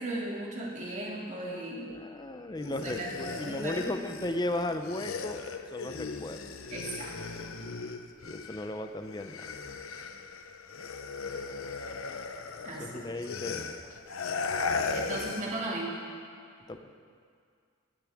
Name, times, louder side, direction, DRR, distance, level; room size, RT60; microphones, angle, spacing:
voice 1, 0.0-1.9 2.6-4.0 6.7-7.5 12.6-13.0 14.9-16.0, right 1 dB, 35° right, -3 dB, 2.4 m, -37 dB
voice 2, 1.9-5.4 5.7-6.6 8.2-9.5 12.8-13.9 16.7-16.9, left 1 dB, 20° left, 7 dB, 0.6 m, -36 dB
sound 1, 2.6-8.8 9.1-15.6, left 4 dB, 80° left, 0.8 m, -37 dB
18.5 x 13.0 x 3.6 m, 2.2 s
head